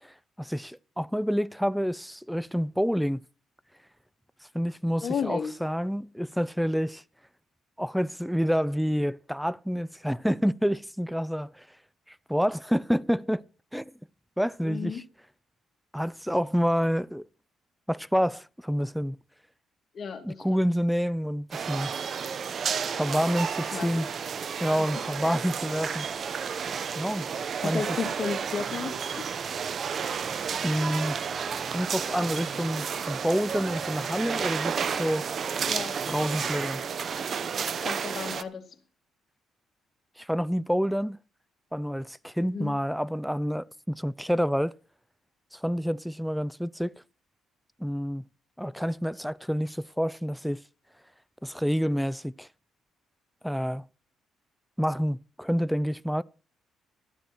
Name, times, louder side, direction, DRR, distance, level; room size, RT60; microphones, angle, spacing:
voice 1, 0.0-3.2 4.5-7.0 7.8-11.7 12.3-13.4 13.7-13.9 14.4-15.0 15.9-17.2 17.9-19.2 20.2-22.0 23.0-24.1 24.6-26.1 26.9-27.3 27.6-27.8 30.6-31.2 31.7-35.3 36.1-36.8 40.2-41.2 41.7-44.8 45.5-46.9 47.8-48.2 48.6-50.6 51.4-52.5 53.4-53.8 54.8-56.2, equal, ahead, 0.5 m, -28 dB
voice 2, 5.0-5.5 14.6-15.0 19.9-20.7 23.7-24.1 27.6-29.3 35.7-36.0 37.8-38.6 42.5-42.8, left 6 dB, 55° left, 2.7 m, -33 dB
sound 1, 21.5-38.4, right 6 dB, 55° right, 0.9 m, -32 dB
13.0 x 10.0 x 4.5 m
supercardioid pair, 70°, 0 cm